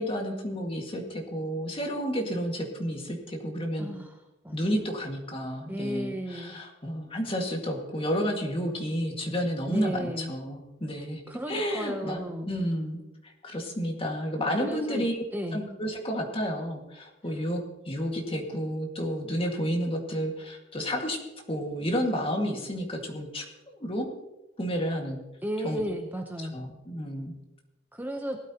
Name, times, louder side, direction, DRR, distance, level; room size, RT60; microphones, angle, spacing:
voice 1, 0.0-3.9 4.5-11.2 11.5-13.0 13.2-15.2 15.5-21.2 21.5-24.1 24.6-25.2 25.6-25.8 26.5-27.3, equal, 30° left, 1 dB, 1.9 m, -31 dB
voice 2, 3.8-4.2 4.4-4.8 5.7-6.6 9.7-10.3 11.3-12.5 14.6-15.1 15.3-15.6 25.4-26.5 27.9-28.4, equal, 10° right, 3 dB, 0.8 m, -34 dB
18.5 x 12.5 x 2.9 m, 0.99 s
head